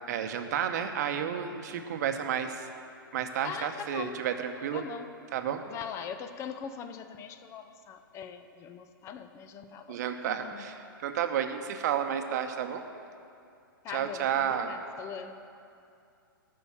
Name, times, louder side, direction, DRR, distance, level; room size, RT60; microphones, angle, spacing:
voice 1, 0.1-2.7 3.1-4.8 5.3-5.6 9.9-12.8 13.9-14.7, right 8 dB, 50° right, 7 dB, 0.9 m, -31 dB
voice 2, 3.4-4.2 4.7-5.1 5.7-10.0 10.3-10.7 13.8-15.4, left 7 dB, 25° left, 10 dB, 0.6 m, -41 dB
13.0 x 5.7 x 7.2 m, 2.5 s
hypercardioid pair, 120°, 12 cm